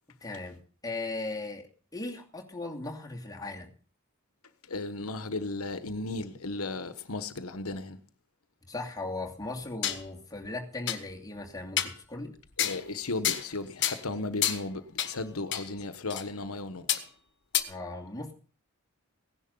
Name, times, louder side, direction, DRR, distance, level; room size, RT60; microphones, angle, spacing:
voice 1, 0.2-3.7 8.7-12.4 17.7-18.3, left 2 dB, 15° left, 2.6 m, -38 dB
voice 2, 4.7-8.0 12.6-16.9, left 2 dB, 85° left, 1.3 m, -35 dB
sound 1, 9.4-10.0 10.4-10.5 10.9-11.0 11.8-12.0 12.6-12.8 13.2-13.5 13.8-14.0 14.4-14.6 15.0-15.1 15.5-15.7 16.1-16.2 16.9-17.0 17.5-17.6, left 10 dB, 55° left, 1.6 m, -29 dB
17.0 x 11.0 x 5.4 m
head